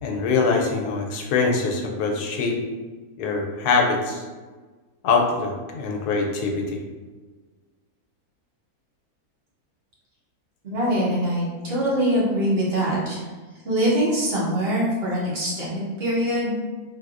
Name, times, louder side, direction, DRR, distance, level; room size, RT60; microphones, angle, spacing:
voice 1, 0.0-2.6 3.2-4.2 5.0-6.8, left 4 dB, 85° left, 1 dB, 1.1 m, -23 dB
voice 2, 10.6-13.3 13.6-16.6, equal, 45° right, -6 dB, 1.0 m, -23 dB
3.4 x 2.6 x 2.4 m, 1.3 s
omnidirectional pair, 1.6 m